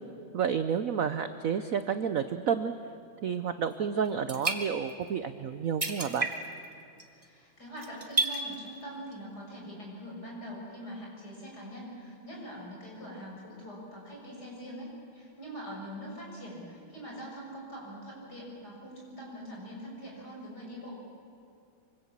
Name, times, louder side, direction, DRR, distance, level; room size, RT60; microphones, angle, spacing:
voice 1, 0.3-2.7 3.2-6.3, right 7 dB, 65° right, 10 dB, 0.9 m, -30 dB
sound 1, 3.7-3.8 4.1-5.1 5.4-5.5 5.8-6.7 7.0-7.3 7.8-8.6 9.1-9.2, right 3 dB, 15° right, 1.6 m, -31 dB
voice 2, 7.1-21.0, equal, 50° left, -2 dB, 7.1 m, -43 dB
25.0 x 25.0 x 7.4 m, 2.5 s
omnidirectional pair, 2.2 m